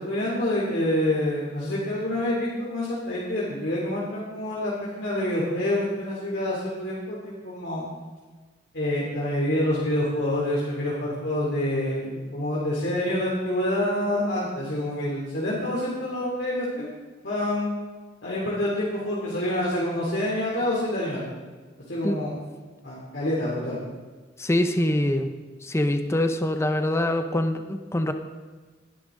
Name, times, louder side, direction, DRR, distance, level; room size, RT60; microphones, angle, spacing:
voice 1, 0.0-7.9 8.7-16.9 17.2-17.7 18.2-21.2 21.9-22.4 22.8-23.8, left 1 dB, 70° left, -6 dB, 2.8 m, -27 dB
voice 2, 24.4-25.3 25.6-28.1, left 1 dB, 15° left, 7 dB, 0.7 m, -24 dB
19.5 x 10.0 x 3.8 m, 1.3 s
head